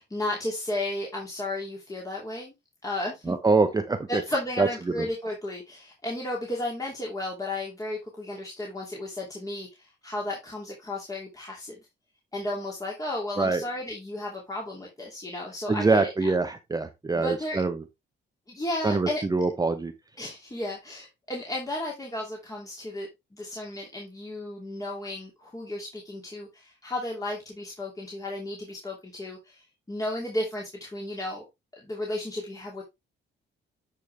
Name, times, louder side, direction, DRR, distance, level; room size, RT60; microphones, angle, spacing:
voice 1, 0.0-2.5 2.8-3.4 4.1-11.8 12.3-16.3 17.1-17.6 18.5-19.2 20.2-31.4 31.8-32.8, left 1 dB, 15° left, -1 dB, 2.6 m, -34 dB
voice 2, 3.3-4.2 4.6-4.7 13.4-13.6 15.7-17.8 18.8-19.9, right 3 dB, 20° right, 7 dB, 0.9 m, -24 dB
9.2 x 5.2 x 3.4 m, 0.21 s
cardioid pair, 90°, 20 cm